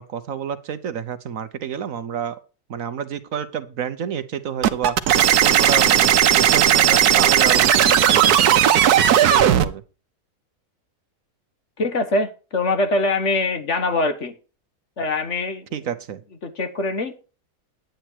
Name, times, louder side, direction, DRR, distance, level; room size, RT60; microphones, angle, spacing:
voice 1, 0.0-2.4 2.7-6.1 6.3-9.8 15.7-16.2, right 8 dB, 60° right, 11 dB, 1.2 m, -29 dB
sound 1, 4.6-9.7, right 10 dB, 80° right, 1.3 m, -16 dB
voice 2, 11.8-14.4 15.0-15.7 16.4-17.1, left 2 dB, 50° left, 8 dB, 1.6 m, -23 dB
10.0 x 9.2 x 4.6 m, 0.34 s
omnidirectional pair, 1.6 m